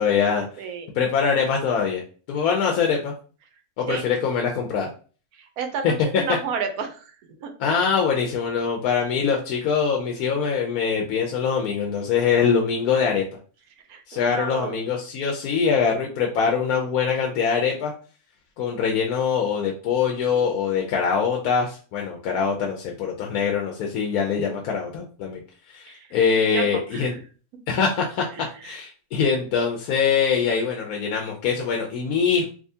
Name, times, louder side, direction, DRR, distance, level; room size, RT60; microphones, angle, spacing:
voice 1, 0.0-0.6 0.9-2.0 2.3-3.1 3.8-4.9 5.8-5.9 7.6-13.2 14.1-17.9 18.6-25.4 25.7-27.1 27.7-28.2 28.6-32.5, left 6 dB, 80° left, 0 dB, 1.1 m, -23 dB
voice 2, 0.6-0.9 3.9-4.0 5.4-7.1 7.4-7.5 13.9-14.8 24.4-24.6 25.9-26.1 26.5-27.2 28.4-28.8, right 6 dB, 80° right, 6 dB, 1.1 m, -32 dB
3.6 x 2.7 x 2.7 m, 0.40 s
omnidirectional pair, 1.5 m